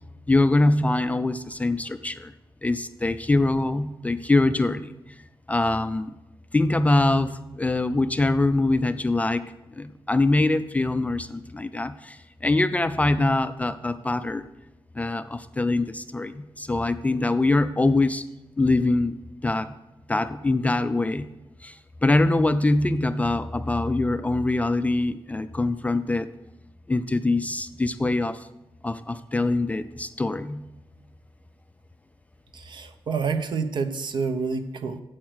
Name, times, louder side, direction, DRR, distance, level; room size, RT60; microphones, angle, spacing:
voice 1, 0.3-2.3 2.6-5.0 5.5-6.1 6.5-9.5 9.8-14.5 14.9-18.3 18.6-19.2 19.4-19.7 20.1-21.3 21.6-26.3 26.9-28.5 28.8-30.7, left 2 dB, 15° left, 12 dB, 0.4 m, -23 dB
voice 2, 32.5-35.0, right 5 dB, 55° right, 9 dB, 0.9 m, -28 dB
8.6 x 7.9 x 6.2 m, 1.0 s
wide cardioid pair, 135°, 9 cm